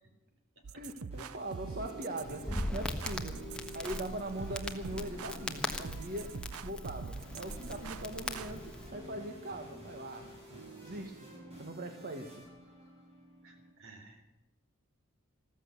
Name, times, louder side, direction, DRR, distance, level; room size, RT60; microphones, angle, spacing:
sound 1, 0.6-8.5, right 5 dB, 85° right, 0.6 m, -45 dB
voice 1, 0.8-3.4 3.7-6.3 6.6-10.3 10.8-11.3 11.6-12.4, right 1 dB, 45° right, 4 dB, 1.4 m, -41 dB
sound 2, 0.9-13.7, right 1 dB, 30° right, 6.7 m, -50 dB
Crackle, 2.2-8.9, left 1 dB, 5° left, 1.4 m, -40 dB
voice 2, 2.2-2.7 13.4-14.2, right 2 dB, 65° right, 5 dB, 4.0 m, -54 dB
14.5 x 14.5 x 6.9 m, 1.0 s
head